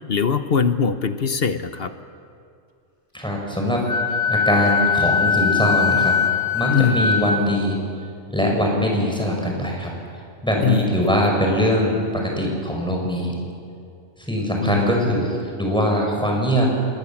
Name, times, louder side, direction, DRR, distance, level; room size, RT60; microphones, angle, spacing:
voice 1, 0.1-1.9 6.7-7.1 10.6-11.0 14.6-15.2, left 6 dB, 50° left, 10 dB, 1.0 m, -22 dB
voice 2, 3.1-3.8 4.3-6.1 6.5-7.8 8.3-9.9 10.4-13.3 14.2-16.7, equal, 5° left, 0 dB, 5.5 m, -22 dB
Wind instrument woodwind instrument, 3.9-7.4, left 6 dB, 25° left, 2.1 m, -21 dB
27.0 x 20.5 x 7.3 m, 2.4 s
omnidirectional pair, 1.4 m